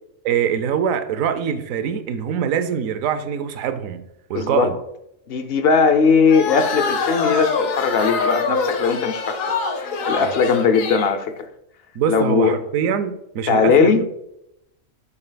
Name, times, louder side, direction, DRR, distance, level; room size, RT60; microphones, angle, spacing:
voice 1, 0.2-4.0 4.3-4.8 11.9-14.0, right 8 dB, 85° right, 1.0 m, -23 dB
voice 2, 4.3-4.7 5.3-11.5 12.1-12.6 13.5-14.0, left 5 dB, 60° left, 0.7 m, -19 dB
sound 1, 6.3-11.2, left 4 dB, 80° left, 1.3 m, -24 dB
8.7 x 6.7 x 2.2 m
omnidirectional pair, 1.4 m